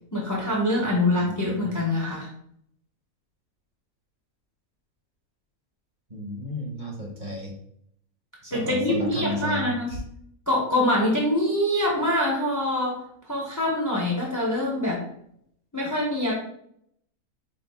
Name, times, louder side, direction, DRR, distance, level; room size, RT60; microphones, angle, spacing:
voice 1, 0.1-2.3 8.5-10.0 10.5-15.0 15.7-16.3, left 1 dB, 20° left, -3 dB, 0.6 m, -25 dB
voice 2, 1.1-1.8 6.1-7.5 8.4-9.6, left 1 dB, 35° right, -3 dB, 1.1 m, -33 dB
4.6 x 2.5 x 3.4 m, 0.70 s
omnidirectional pair, 1.5 m